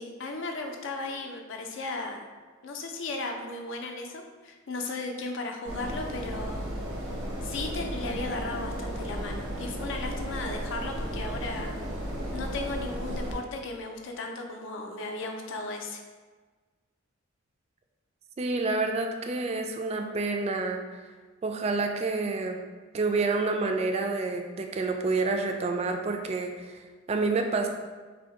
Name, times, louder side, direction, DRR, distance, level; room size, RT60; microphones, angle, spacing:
voice 1, 0.0-2.3 2.6-6.6 7.1-11.8 12.3-16.0, left 2 dB, 65° left, 3 dB, 0.5 m, -36 dB
sound 1, 5.6-13.4, equal, 85° right, 0.8 m, -34 dB
voice 2, 18.4-21.0 21.4-22.6 22.9-26.8 27.1-27.7, right 3 dB, 30° right, 4 dB, 0.3 m, -28 dB
2.7 x 2.7 x 4.3 m, 1.4 s
head